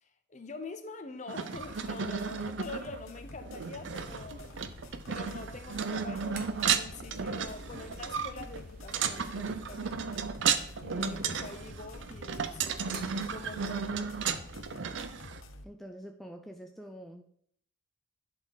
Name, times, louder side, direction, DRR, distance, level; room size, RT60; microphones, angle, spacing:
voice 1, 0.0-10.3 10.8-12.8 13.3-14.2, left 3 dB, 35° left, 0.7 m, -45 dB
sound 1, 1.3-15.4, right 6 dB, 65° right, 0.5 m, -34 dB
sound 2, 1.5-15.6, left 2 dB, 85° left, 0.8 m, -49 dB
sound 3, 3.8-15.1, right 3 dB, 45° right, 0.9 m, -53 dB
voice 2, 15.6-17.2, equal, ahead, 0.3 m, -46 dB
11.0 x 4.3 x 3.9 m
head